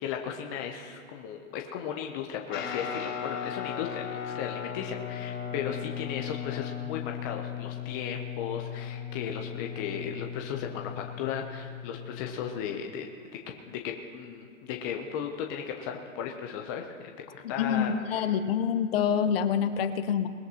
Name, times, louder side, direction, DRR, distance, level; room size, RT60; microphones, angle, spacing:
voice 1, 0.0-13.1 13.7-18.3, left 8 dB, 15° left, 2 dB, 0.5 m, -36 dB
Guitar, 2.5-12.3, left 8 dB, 70° left, 2.9 m, -37 dB
voice 2, 17.6-20.3, left 8 dB, 45° left, 10 dB, 0.9 m, -26 dB
20.5 x 14.5 x 2.8 m, 2.2 s
hypercardioid pair, 140°, 40 cm